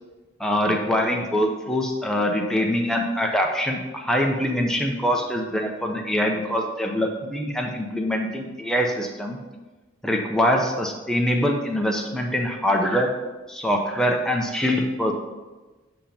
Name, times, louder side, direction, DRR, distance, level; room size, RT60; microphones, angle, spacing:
voice 1, 0.4-9.4 10.0-13.1 13.5-15.1, equal, 5° left, 1 dB, 0.5 m, -24 dB
7.1 x 2.9 x 5.1 m, 1.2 s
head